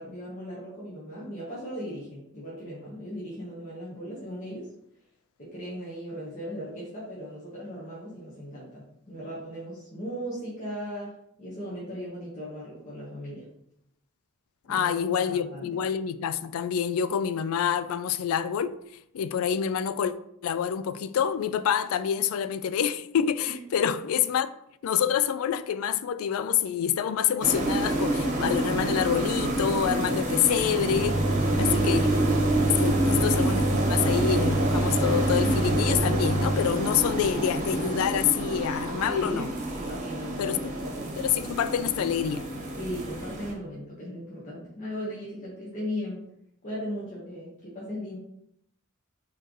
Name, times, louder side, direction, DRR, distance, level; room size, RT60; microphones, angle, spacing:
voice 1, 0.0-4.7 5.4-11.1 11.4-13.5 14.7-14.9 15.2-15.7 23.5-23.6 31.5-31.9 32.6-33.2 39.1-41.1 42.8-46.2 46.6-48.2, equal, 35° left, 1.3 m, -37 dB
voice 2, 14.7-18.7 19.1-20.1 20.4-24.5 24.8-31.2 31.6-32.0 32.8-39.5 40.4-40.7 41.2-42.5, left 8 dB, 75° left, 0.3 m, -27 dB
sound 1, 27.4-43.5, right 1 dB, 35° right, 1.0 m, -28 dB
sound 2, 30.9-36.6, right 1 dB, 85° right, 0.9 m, -27 dB
4.4 x 3.8 x 3.1 m
head